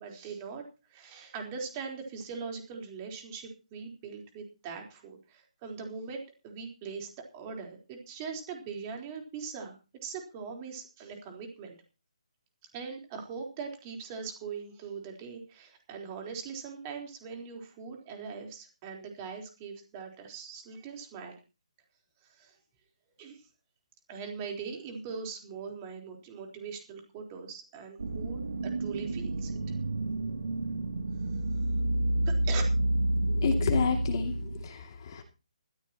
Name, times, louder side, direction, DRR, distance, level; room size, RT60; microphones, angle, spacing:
voice 1, 0.0-9.8 10.0-11.8 12.7-21.4 22.2-22.5 23.2-23.4 24.1-29.5 32.2-32.6, right 5 dB, 20° right, 2 dB, 4.0 m, -41 dB
sound 1, 28.0-34.6, right 1 dB, 85° right, 2.6 m, -29 dB
voice 2, 33.3-35.2, left 6 dB, 35° left, 5 dB, 2.5 m, -31 dB
20.0 x 14.5 x 3.0 m, 0.31 s
hypercardioid pair, 170°, 4 cm